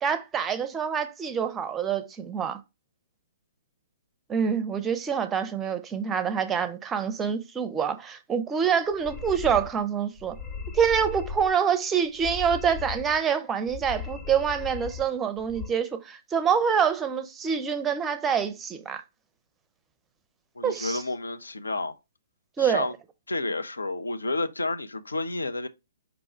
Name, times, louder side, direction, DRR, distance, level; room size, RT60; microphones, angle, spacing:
voice 1, 0.0-2.6 4.3-10.4 10.7-19.0 20.6-21.0 22.6-22.9, right 7 dB, 15° right, 0.5 m, -26 dB
sound 1, 8.9-9.8 10.2-11.5 12.1-13.2 13.7-15.1 15.4-15.7, left 5 dB, 30° left, 0.9 m, -37 dB
voice 2, 20.6-22.0 22.6-22.9 23.3-25.7, left 2 dB, 75° left, 0.5 m, -30 dB
5.2 x 2.3 x 4.3 m
figure-of-eight pair, 125°, 0 cm